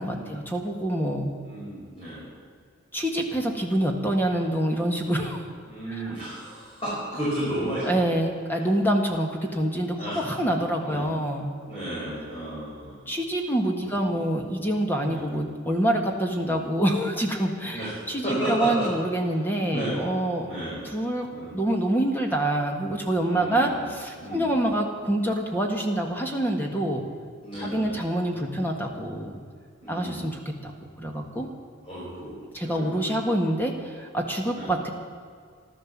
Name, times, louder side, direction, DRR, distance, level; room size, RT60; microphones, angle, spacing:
voice 1, 0.0-1.3 2.9-5.4 5.9-6.1 7.8-11.5 13.1-20.5 20.8-21.3 21.5-27.0 27.6-29.3 29.9-30.7 31.0-31.5 32.5-34.9, right 1 dB, 10° left, 2 dB, 1.6 m, -26 dB
voice 2, 1.4-2.2 5.7-8.1 10.0-10.2 10.8-11.1 11.7-13.0 14.1-14.3 15.0-15.3 16.3-16.6 17.7-17.9 18.2-18.9 19.7-20.0 20.5-20.9 21.3-21.6 23.2-23.9 24.2-24.7 27.4-28.0 29.8-30.2 31.8-32.4 32.6-32.9 34.5-34.7, right 1 dB, 30° left, -9 dB, 5.7 m, -33 dB
15.0 x 12.5 x 7.4 m, 2.1 s
head